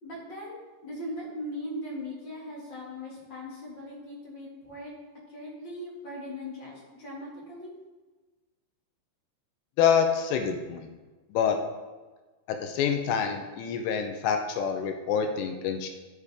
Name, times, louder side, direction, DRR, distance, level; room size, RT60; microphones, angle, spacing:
voice 1, 0.0-4.9 5.3-7.7, left 1 dB, 50° left, -4 dB, 1.4 m, -39 dB
voice 2, 9.8-10.9 11.3-11.6 12.5-15.9, left 7 dB, 80° left, 5 dB, 2.8 m, -26 dB
12.0 x 8.3 x 3.5 m, 1.3 s
omnidirectional pair, 5.2 m